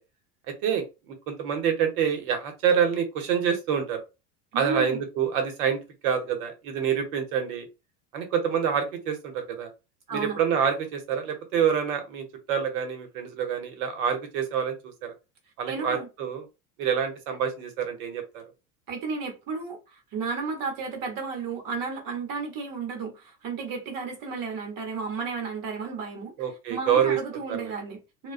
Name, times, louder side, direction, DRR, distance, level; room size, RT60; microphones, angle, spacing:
voice 1, 0.5-0.8 1.3-4.0 4.5-7.7 8.1-9.7 10.1-15.1 15.6-16.5 16.8-18.4 26.4-27.7, right 7 dB, 70° right, 1.0 m, -27 dB
voice 2, 4.5-5.0 10.1-10.4 15.7-16.1 18.9-26.3 26.7-28.3, right 4 dB, 45° right, 1.1 m, -33 dB
2.3 x 2.2 x 2.4 m
hypercardioid pair, 95°, 45 cm